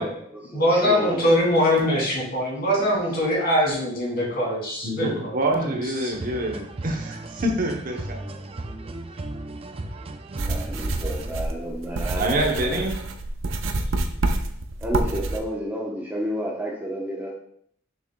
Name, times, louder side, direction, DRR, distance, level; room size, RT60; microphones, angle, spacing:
voice 1, 0.0-1.3 2.6-2.9 10.4-12.9 13.7-13.9 14.8-17.3, equal, 10° right, -3 dB, 0.9 m, -31 dB
voice 2, 0.5-6.1, equal, 50° left, -4 dB, 2.6 m, -23 dB
voice 3, 4.8-8.3 12.2-12.9, right 1 dB, 45° right, 2 dB, 0.9 m, -26 dB
sound 1, 6.1-11.3, right 2 dB, 30° right, 0.4 m, -36 dB
sound 2, 10.4-15.4, right 2 dB, 70° right, 0.6 m, -27 dB
6.8 x 6.2 x 2.3 m, 0.65 s
head